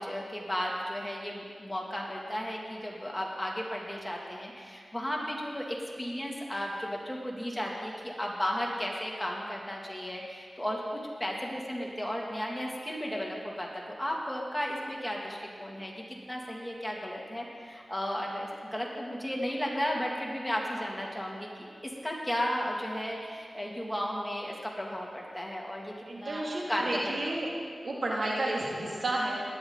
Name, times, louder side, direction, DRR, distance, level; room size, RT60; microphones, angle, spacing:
voice 1, 0.0-27.2, equal, 10° left, -2 dB, 2.9 m, -34 dB
voice 2, 26.1-27.5 27.8-29.4, right 1 dB, 70° right, -4 dB, 2.8 m, -31 dB
19.0 x 11.0 x 4.1 m, 2.1 s
cardioid pair, 45°, 0 cm